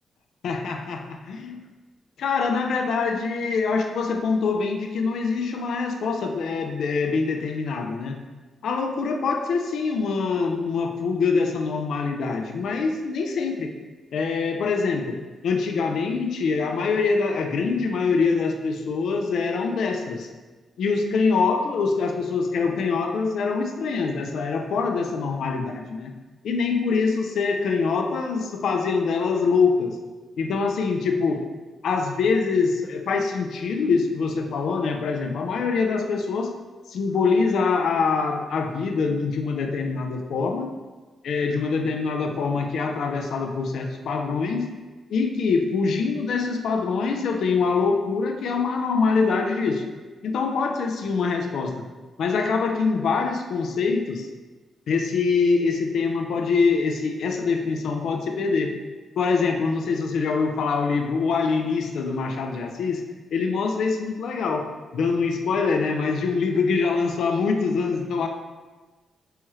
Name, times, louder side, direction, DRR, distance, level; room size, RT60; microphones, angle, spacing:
voice 1, 0.4-1.0 1.3-1.6 2.2-8.2 8.6-13.7 14.1-15.2 15.4-20.3 20.8-26.1 26.4-30.0 30.4-31.4 31.8-36.5 36.9-40.7 41.2-44.8 45.1-49.8 50.2-51.8 52.2-54.3 54.9-58.7 59.2-63.0 63.3-64.7 64.9-68.3, left 4 dB, 80° left, 4 dB, 0.4 m, -24 dB
4.2 x 2.3 x 3.1 m, 1.3 s
cardioid pair, 95°, 0 cm